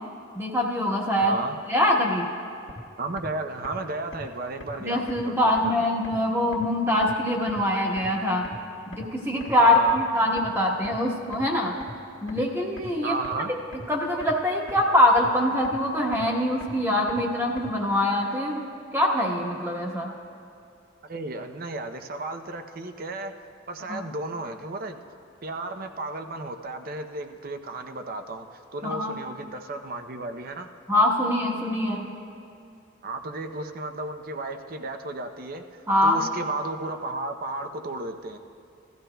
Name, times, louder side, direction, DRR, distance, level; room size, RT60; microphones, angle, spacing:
voice 1, 0.3-1.4 1.7-2.3 4.8-8.5 9.0-11.7 12.2-13.2 13.9-20.1 23.9-24.0 28.8-29.1 30.9-32.1 35.9-36.2, left 1 dB, 15° right, -1 dB, 1.1 m, -23 dB
voice 2, 1.2-1.6 3.0-5.9 9.6-10.0 13.0-13.5 21.1-23.3 23.7-25.0 25.4-30.7 33.0-38.4, right 2 dB, 50° right, 7 dB, 0.6 m, -34 dB
sound 1, 2.7-2.8 3.2-3.3 3.6-3.7 4.1-4.2 4.6-4.7 5.1-5.2 5.6-5.7 6.0-6.1 6.5-6.6 7.0-7.1 7.5-7.6 8.0-8.1 8.4-8.5 8.9-9.0 9.4-9.5 9.9-10.0 10.4-10.5 10.8-10.9 11.3-11.4 11.8-11.9 12.3-12.4 12.8-12.9 13.2-13.3 13.7-13.8 14.2-14.3 14.7-14.8 15.2-15.3 15.6-15.7 16.1-16.2 16.6-16.7 17.1-17.2 17.6-17.7, left 2 dB, 85° left, 1.4 m, -41 dB
17.0 x 13.5 x 2.2 m, 2.5 s
head